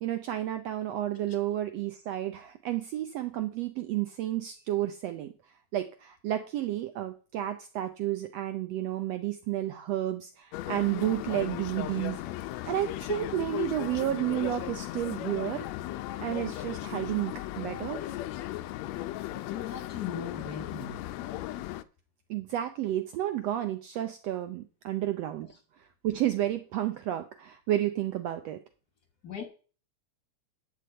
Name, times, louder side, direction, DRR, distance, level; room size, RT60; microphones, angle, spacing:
voice 1, 0.0-5.3 5.7-12.2 12.7-15.7 16.2-18.1 22.3-25.5 26.0-28.6, right 13 dB, 75° right, 9 dB, 1.5 m, -31 dB
sound 1, 10.5-21.8, left 14 dB, 80° left, 1.6 m, -36 dB
voice 2, 19.5-21.0 29.2-29.4, left 7 dB, 60° left, 2 dB, 1.0 m, -38 dB
12.0 x 5.1 x 7.8 m, 0.38 s
omnidirectional pair, 3.7 m